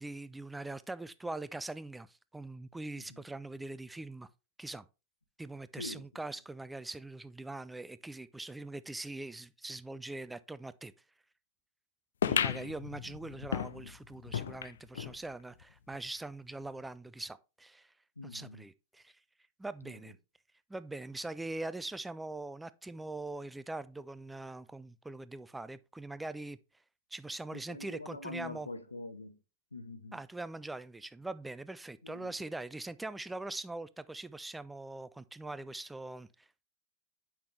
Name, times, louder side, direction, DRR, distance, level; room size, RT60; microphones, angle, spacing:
voice 1, 0.0-4.3 4.6-4.9 5.4-10.9 12.2-17.9 18.2-19.2 19.6-20.2 20.7-26.6 27.1-28.7 30.1-36.6, right 2 dB, 5° right, 0.4 m, -42 dB
sound 1, 12.2-15.2 15.6-15.7 15.9-16.0 16.8-16.9, left 8 dB, 65° left, 0.4 m, -34 dB
voice 2, 12.3-12.7 18.2-18.7 19.8-19.9 27.5-29.4 29.7-30.2 32.0-32.3, left 2 dB, 80° left, 0.8 m, -45 dB
8.5 x 5.8 x 3.2 m
figure-of-eight pair, 90°, 0 cm